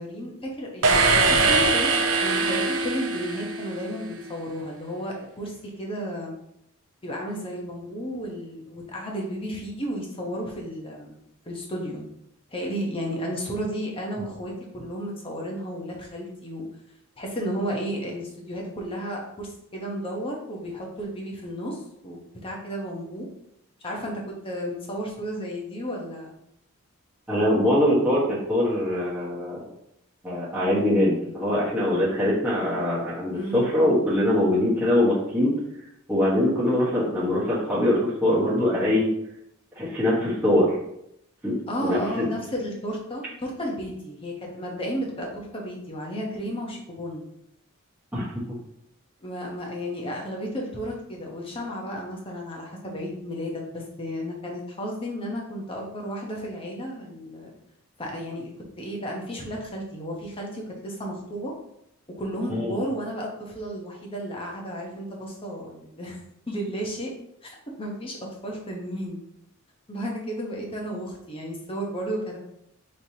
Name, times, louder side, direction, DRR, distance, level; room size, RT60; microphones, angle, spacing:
voice 1, 0.0-1.9 2.2-6.3 7.0-11.2 11.5-12.0 12.5-16.7 17.2-23.3 23.8-26.3 33.3-33.6 41.7-47.3 49.2-57.5 58.0-58.5 58.8-61.5 62.2-66.2 66.5-67.1 67.4-68.2 68.4-69.2 69.9-72.4, equal, 25° left, -1 dB, 0.9 m, -33 dB
sound 1, 0.8-4.0, right 3 dB, 75° right, 0.6 m, -22 dB
voice 2, 27.3-29.6 30.2-35.5 36.1-39.1 39.7-40.8 41.4-41.5 41.8-42.3 48.1-48.3 62.5-62.8, left 1 dB, 10° right, -9 dB, 1.2 m, -23 dB
5.7 x 3.2 x 2.8 m, 0.77 s
head